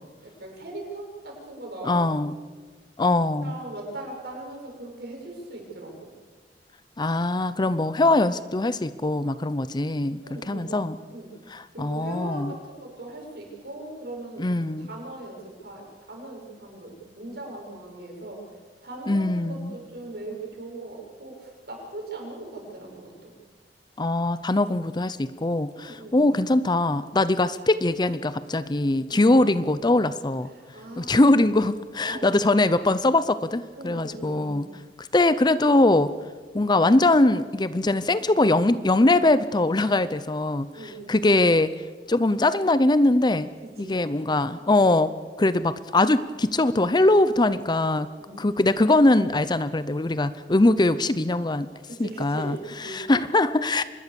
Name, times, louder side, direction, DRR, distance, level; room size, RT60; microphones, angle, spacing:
voice 1, 0.2-2.1 3.4-6.1 10.2-10.8 11.1-11.4 11.7-18.4 18.8-23.4 25.7-26.4 29.1-29.4 30.5-31.5 32.0-32.4 33.7-34.7 40.7-41.4 43.6-44.2 48.2-48.7 51.8-53.0, right 2 dB, 65° right, -1 dB, 7.1 m, -40 dB
voice 2, 1.8-2.4 3.0-3.6 7.0-10.2 10.5-11.0 11.5-12.6 14.4-14.9 19.1-19.7 24.0-30.5 31.0-34.7 35.1-36.1 36.5-40.7 41.1-41.7 42.1-43.5 43.8-45.1 45.4-48.1 48.4-51.7 52.0-53.8, left 2 dB, 25° left, 15 dB, 0.6 m, -22 dB
25.0 x 20.5 x 7.0 m, 1.4 s
head